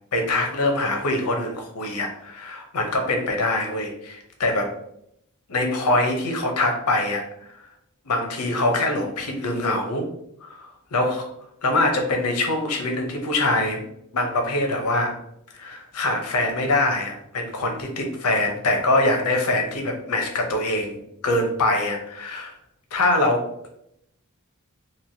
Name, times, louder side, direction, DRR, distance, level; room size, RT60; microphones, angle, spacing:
voice 1, 0.1-4.7 5.5-7.2 8.1-10.1 10.4-11.3 11.6-13.8 14.1-15.2 15.5-22.5 22.9-23.5, left 2 dB, 90° left, 3 dB, 0.7 m, -24 dB
3.1 x 2.6 x 2.7 m, 0.77 s
head